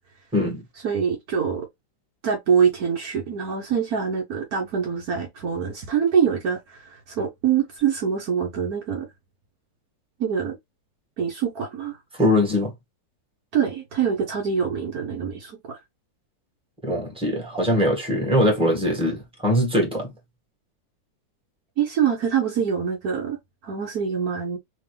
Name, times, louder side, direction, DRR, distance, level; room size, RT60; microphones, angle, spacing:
voice 1, 0.3-0.6 12.1-12.7 16.8-20.1, left 1 dB, 5° right, 1.8 m, -22 dB
voice 2, 0.8-1.7 2.2-9.1 10.2-10.6 11.2-12.0 13.5-15.8 21.8-23.4 23.6-24.6, right 7 dB, 65° right, 1.3 m, -24 dB
3.5 x 3.4 x 3.3 m
omnidirectional pair, 1.8 m